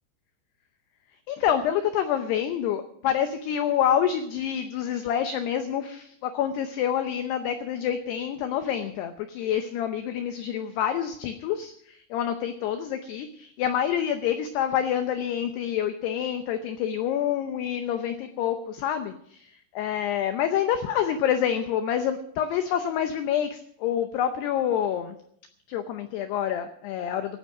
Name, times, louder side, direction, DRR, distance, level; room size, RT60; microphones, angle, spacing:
voice 1, 1.3-25.2 25.7-27.4, left 9 dB, 85° left, 8 dB, 2.3 m, -27 dB
16.5 x 9.1 x 6.2 m, 0.66 s
omnidirectional pair, 5.9 m